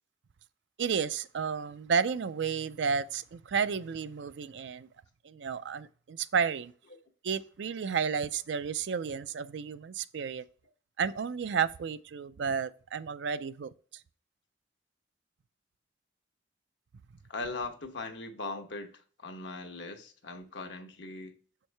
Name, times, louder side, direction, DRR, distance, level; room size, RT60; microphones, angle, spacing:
voice 1, 0.8-4.9 5.2-6.7 7.2-10.4 11.0-13.7, right 6 dB, 70° right, 0.4 m, -32 dB
voice 2, 17.3-21.3, left 3 dB, 70° left, 1.0 m, -40 dB
6.3 x 4.6 x 3.3 m
head